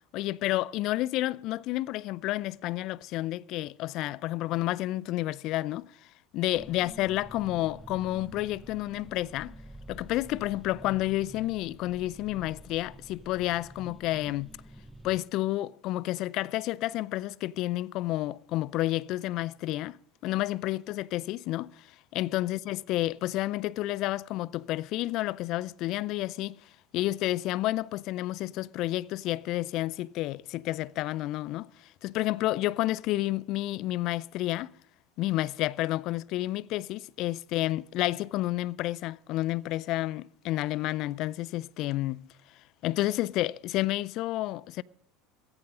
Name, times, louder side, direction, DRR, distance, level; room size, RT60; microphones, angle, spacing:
voice 1, 0.1-5.9 6.3-9.5 9.9-14.5 15.0-20.0 20.2-21.9 22.1-26.6 26.9-34.7 35.2-42.2 42.8-44.8, left 16 dB, 55° left, 0.4 m, -30 dB
sound 1, 6.5-15.2, right 1 dB, 5° right, 0.9 m, -48 dB
16.5 x 14.0 x 3.8 m
hypercardioid pair, 75°, 0 cm